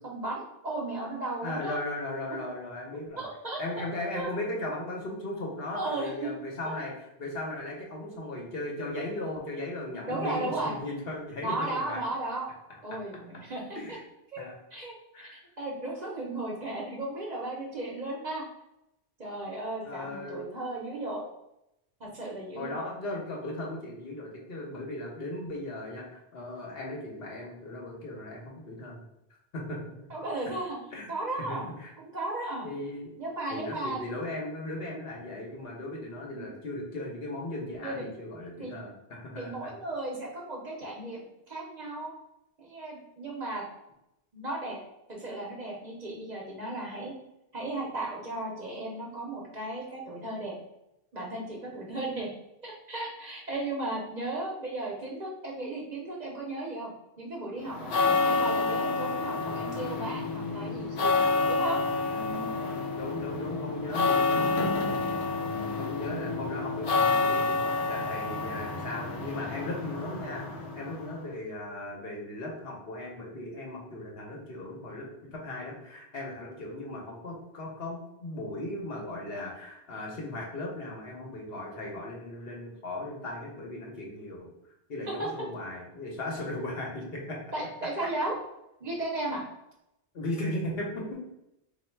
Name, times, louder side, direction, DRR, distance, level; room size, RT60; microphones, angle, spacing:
voice 1, 0.0-1.8 3.2-3.6 4.1-4.3 5.7-6.3 6.6-6.8 10.1-10.8 11.4-12.5 12.8-13.6 14.3-14.4 14.7-15.3 15.6-18.4 19.2-21.3 22.0-22.8 30.1-30.8 31.1-31.7 32.0-32.7 33.2-34.2 36.3-36.5 37.8-38.1 38.6-38.7 39.4-42.1 42.6-43.6 44.3-44.8 45.1-47.1 47.5-50.5 51.1-52.3 52.6-57.9 58.2-61.8 65.5-65.8 85.1-85.3 87.5-88.3 88.8-89.4, right 2 dB, 45° right, -2 dB, 0.9 m, -35 dB
voice 2, 1.4-3.2 3.6-6.9 7.2-12.0 13.7-14.0 14.4-14.5 15.1-15.3 19.8-20.4 22.5-29.0 29.5-29.8 30.9-31.1 31.4-31.9 32.6-33.1 33.5-39.7 63.0-64.7 65.8-84.5 84.9-87.4 90.1-91.2, left 1 dB, 65° left, -1 dB, 1.1 m, -37 dB
sound 1, 57.7-71.2, left 3 dB, 80° left, 0.9 m, -29 dB
3.1 x 2.5 x 4.4 m, 0.86 s
omnidirectional pair, 1.1 m